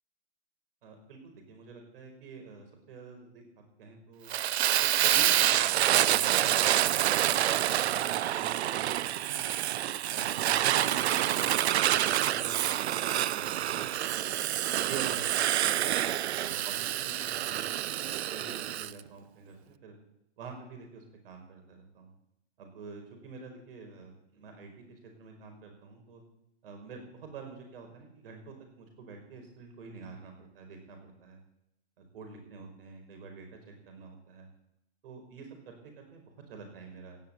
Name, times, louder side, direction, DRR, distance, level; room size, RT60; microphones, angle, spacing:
voice 1, 0.8-3.4 3.8-4.3 4.7-9.6 10.1-11.6 12.2-14.1 14.7-15.3 15.6-15.8 16.4-19.9 20.4-22.1 22.6-26.2 26.6-31.4 32.0-34.5 35.0-37.2, right 4 dB, 60° right, 3 dB, 5.3 m, -47 dB
Fire, 4.3-18.9, right 12 dB, 75° right, 0.7 m, -27 dB
16.5 x 6.9 x 9.0 m, 0.83 s
hypercardioid pair, 170°, 33 cm